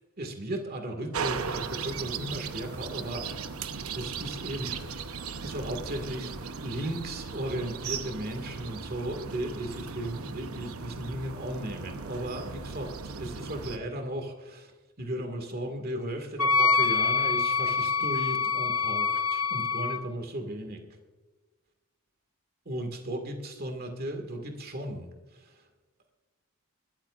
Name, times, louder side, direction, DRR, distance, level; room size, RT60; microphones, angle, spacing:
voice 1, 0.2-3.3 3.9-5.0 5.4-12.9 13.2-14.7 15.0-20.8 22.7-25.5, right 1 dB, 45° right, 4 dB, 2.0 m, -36 dB
sound 1, 1.1-13.8, right 5 dB, 80° right, 0.9 m, -37 dB
Wind instrument woodwind instrument, 16.4-20.0, left 5 dB, 75° left, 0.9 m, -25 dB
24.0 x 13.5 x 2.5 m, 1.2 s
head